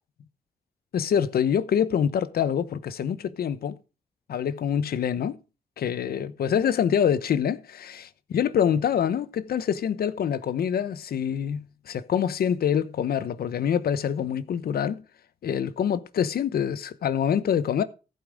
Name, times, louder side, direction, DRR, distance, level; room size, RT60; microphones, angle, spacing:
voice 1, 0.9-3.8 4.3-5.4 5.8-15.0 15.4-17.8, left 8 dB, 80° left, 1.0 m, -25 dB
15.0 x 5.5 x 6.4 m
cardioid pair, 85°, 16 cm